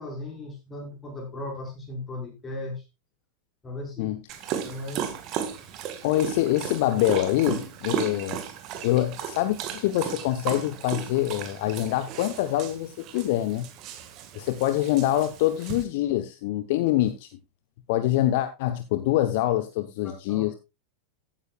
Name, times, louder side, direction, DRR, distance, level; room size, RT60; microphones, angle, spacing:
voice 1, 0.0-2.8 3.6-4.1 4.4-5.2 20.0-20.5, left 2 dB, 15° left, 0 dB, 5.0 m, -37 dB
Dog, 4.3-15.8, right 9 dB, 40° right, 1.7 m, -35 dB
voice 2, 6.0-8.4 8.8-13.7 14.3-17.3 17.9-20.5, left 14 dB, 50° left, 10 dB, 0.9 m, -25 dB
15.0 x 9.5 x 2.3 m, 0.24 s
figure-of-eight pair, 90°, 0 cm